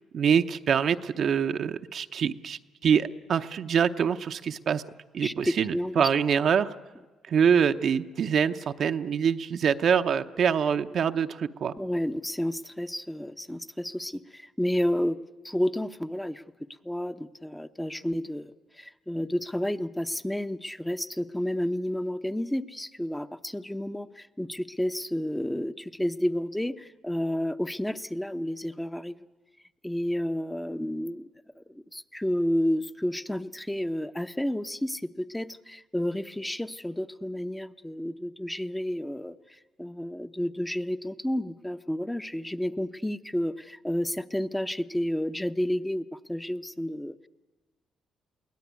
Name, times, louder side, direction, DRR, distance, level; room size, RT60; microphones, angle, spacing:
voice 1, 0.1-4.8 5.1-6.7 7.3-11.7, right 7 dB, 60° right, 8 dB, 0.8 m, -25 dB
voice 2, 5.2-6.1 11.8-16.4 16.8-29.2 29.8-31.3 31.6-47.3, equal, 5° left, 9 dB, 0.8 m, -31 dB
22.5 x 17.0 x 9.5 m, 1.3 s
cardioid pair, 75°, 0 cm